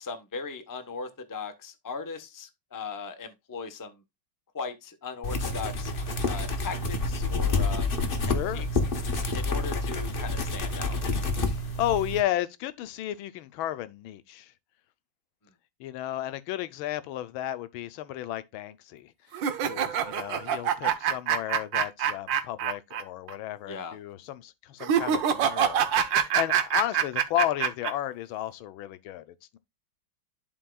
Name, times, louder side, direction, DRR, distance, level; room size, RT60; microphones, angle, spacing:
voice 1, 0.0-4.0 4.5-5.9 6.2-7.9 8.2-8.7 9.3-11.0 23.7-24.0 25.9-26.1, left 4 dB, 20° left, 0.5 m, -38 dB
sound 1, 5.2-12.2, left 3 dB, 35° left, 0.9 m, -28 dB
voice 2, 8.3-8.7 11.8-14.5 15.8-19.1 19.6-29.6, left 13 dB, 90° left, 1.5 m, -33 dB
sound 2, 19.3-23.0 23.3-23.4 24.8-27.9, right 8 dB, 70° right, 1.5 m, -25 dB
11.5 x 4.5 x 2.3 m
omnidirectional pair, 2.2 m